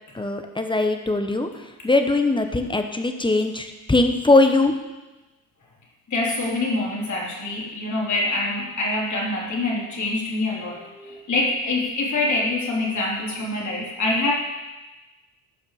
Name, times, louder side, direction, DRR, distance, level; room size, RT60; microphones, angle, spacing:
voice 1, 0.1-1.5 1.8-4.7, left 2 dB, 10° left, 6 dB, 1.2 m, -20 dB
voice 2, 6.1-14.3, left 2 dB, 40° left, -3 dB, 3.7 m, -25 dB
14.5 x 5.6 x 5.0 m, 1.1 s
supercardioid pair, 65°, 45 cm